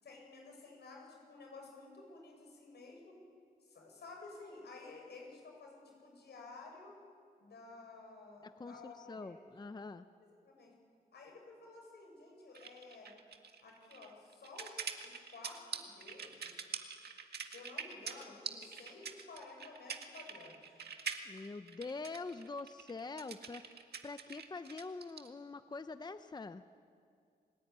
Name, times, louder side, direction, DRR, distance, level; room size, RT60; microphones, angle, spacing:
voice 1, 0.0-3.2 3.6-7.0 7.4-9.5 10.4-10.7 11.1-13.1 13.6-14.7 15.0-16.7 17.4-20.8, left 3 dB, 85° left, 1 dB, 7.5 m, -53 dB
voice 2, 8.4-10.1 21.2-26.6, left 3 dB, 25° left, 10 dB, 0.8 m, -45 dB
sound 1, 12.5-25.3, right 6 dB, 75° right, 1.9 m, -45 dB
29.5 x 19.0 x 9.8 m, 2.3 s
wide cardioid pair, 110°, 17 cm